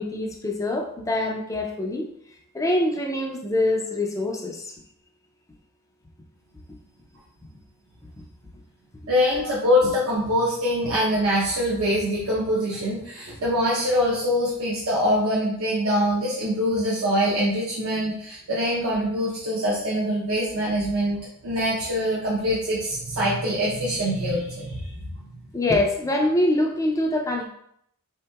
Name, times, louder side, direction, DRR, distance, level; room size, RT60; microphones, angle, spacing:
voice 1, 0.0-2.1 2.5-4.7 25.5-27.5, left 1 dB, 15° left, 1 dB, 0.3 m, -24 dB
voice 2, 9.1-25.2, equal, 70° right, -6 dB, 0.6 m, -24 dB
3.6 x 2.8 x 2.2 m, 0.71 s
head